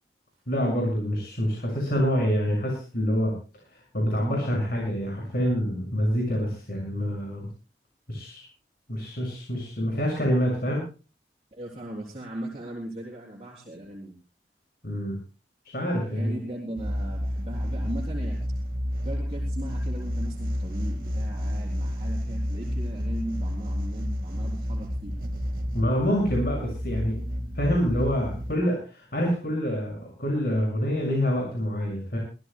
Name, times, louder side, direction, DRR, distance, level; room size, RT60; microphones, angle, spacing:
voice 1, 0.5-3.3 3.7-7.5 8.1-8.5 8.9-10.8 14.8-15.1 15.7-16.3 25.7-27.1 27.5-32.2, equal, 60° left, -2 dB, 6.4 m, -26 dB
voice 2, 11.5-14.2 16.1-18.4 19.0-25.1, right 1 dB, 35° right, -4 dB, 3.7 m, -38 dB
sound 1, 16.8-28.6, equal, 50° right, 1.9 m, -30 dB
25.5 x 15.0 x 2.3 m, 0.34 s
head